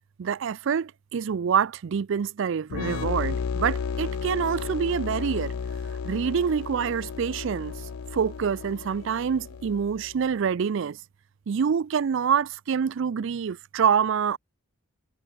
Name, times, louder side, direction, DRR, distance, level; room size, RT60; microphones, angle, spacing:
voice 1, 0.2-5.5 6.0-7.8 8.1-11.0 11.5-14.4, right 7 dB, 60° right, 0.4 m, -26 dB
sound 1, 2.7-10.2, left 6 dB, 85° left, 0.5 m, -33 dB
Trumpet, 2.8-9.3, left 4 dB, 70° left, 0.9 m, -46 dB
sound 2, 5.1-10.1, left 3 dB, 55° left, 4.0 m, -55 dB
head